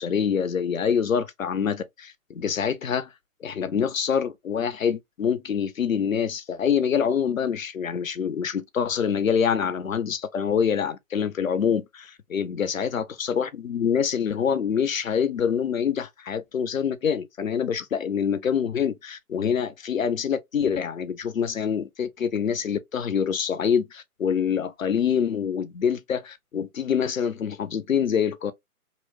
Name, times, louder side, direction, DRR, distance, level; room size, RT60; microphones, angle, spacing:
voice 1, 0.0-3.1 3.4-28.5, left 7 dB, 65° left, 0.6 m, -25 dB
2.9 x 2.0 x 2.6 m
figure-of-eight pair, 135°, 44 cm